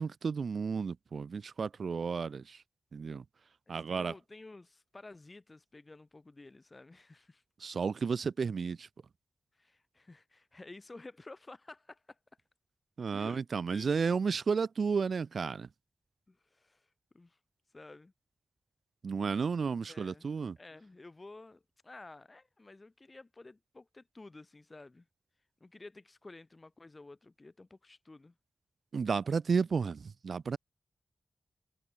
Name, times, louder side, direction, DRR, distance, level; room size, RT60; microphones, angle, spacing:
voice 1, 0.0-2.6 2.9-3.2 3.7-4.1 7.6-8.9 13.0-15.7 19.0-20.6 28.9-30.6, right 5 dB, 70° right, 0.5 m, -32 dB
voice 2, 3.7-7.4 9.5-12.2 13.1-13.4 13.7-14.0 16.3-17.4 17.7-18.1 19.3-19.5 19.9-20.3 20.6-25.1 25.6-28.3, left 2 dB, 35° left, 1.0 m, -52 dB
wide cardioid pair, 75°, 0 cm